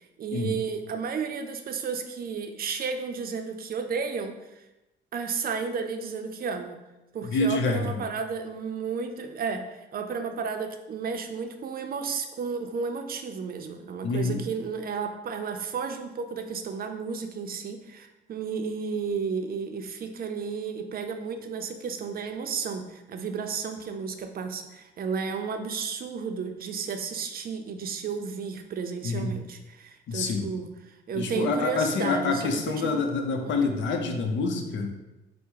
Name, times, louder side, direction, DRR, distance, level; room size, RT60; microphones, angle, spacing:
voice 1, 0.2-4.4 5.1-6.8 7.1-30.7 31.1-33.0 33.4-33.6 33.9-34.2, right 5 dB, 50° right, 6 dB, 0.5 m, -33 dB
voice 2, 7.2-8.0 14.0-14.4 29.0-29.3 30.1-30.5 31.1-34.9, left 3 dB, 70° left, 4 dB, 0.7 m, -27 dB
4.7 x 2.1 x 4.5 m, 0.99 s
cardioid pair, 90°, 20 cm